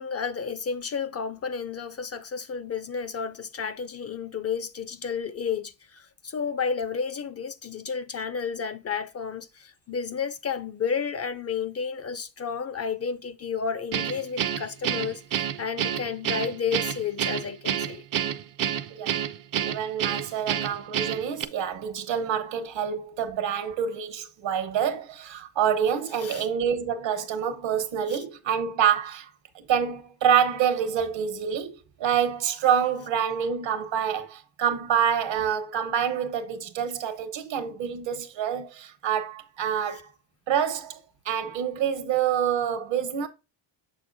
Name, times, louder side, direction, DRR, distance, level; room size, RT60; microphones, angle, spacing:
voice 1, 0.0-18.0 26.2-26.5 28.1-28.2, left 6 dB, 35° left, 0.4 m, -31 dB
Guitar, 13.9-21.5, right 10 dB, 45° right, 0.5 m, -28 dB
voice 2, 19.6-29.3 29.5-40.1 40.5-43.3, right 8 dB, 75° right, 1.2 m, -27 dB
6.9 x 6.2 x 2.6 m
cardioid pair, 125°, 46 cm